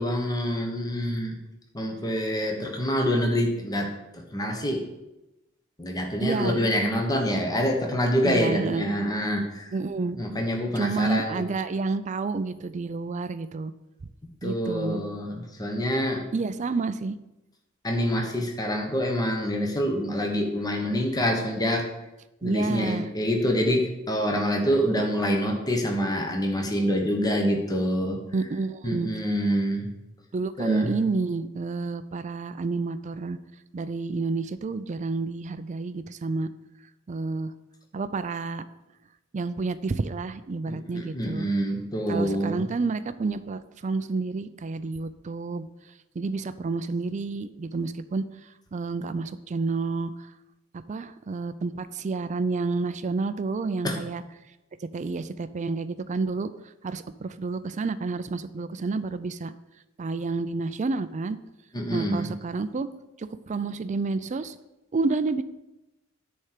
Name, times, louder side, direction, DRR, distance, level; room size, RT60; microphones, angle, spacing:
voice 1, 0.0-1.4 1.7-4.8 5.8-9.7 10.2-11.4 14.4-16.2 17.8-21.9 22.4-28.2 28.8-29.9 30.6-30.9 40.7-42.6 53.8-54.0 61.7-62.3, equal, 20° left, 2 dB, 1.2 m, -26 dB
voice 2, 6.2-6.6 8.2-8.9 9.7-10.2 10.8-13.7 14.4-15.0 16.3-17.2 22.4-23.1 28.3-29.1 30.3-33.4 33.7-36.5 37.1-37.5 37.9-38.6 39.3-41.5 42.1-45.7 46.2-50.1 50.9-54.2 54.9-56.5 56.8-59.5 60.0-61.4 61.9-62.9 63.2-64.5 64.9-65.4, right 3 dB, 35° right, 13 dB, 0.4 m, -29 dB
9.9 x 4.4 x 6.6 m, 0.96 s
head